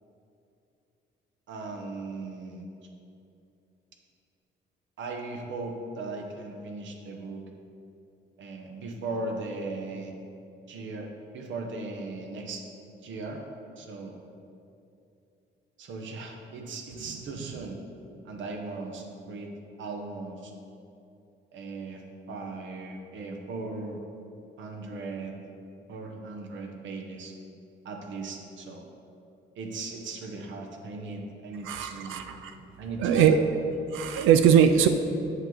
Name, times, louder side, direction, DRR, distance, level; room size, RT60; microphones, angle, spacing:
voice 1, 1.5-2.6 5.0-7.4 8.4-10.1 10.7-12.6 13.0-13.4 13.8-14.1 15.8-17.8 18.2-19.5 19.8-20.5 21.5-24.0 24.6-25.4 25.9-27.3 27.8-28.9 29.6-32.2 32.8-33.4, right 3 dB, 70° right, 2 dB, 1.1 m, -38 dB
voice 2, 31.6-32.5 33.0-33.4 33.9-34.9, right 8 dB, 85° right, 7 dB, 0.4 m, -21 dB
7.8 x 6.0 x 4.0 m, 2.7 s
cardioid pair, 90°, 20 cm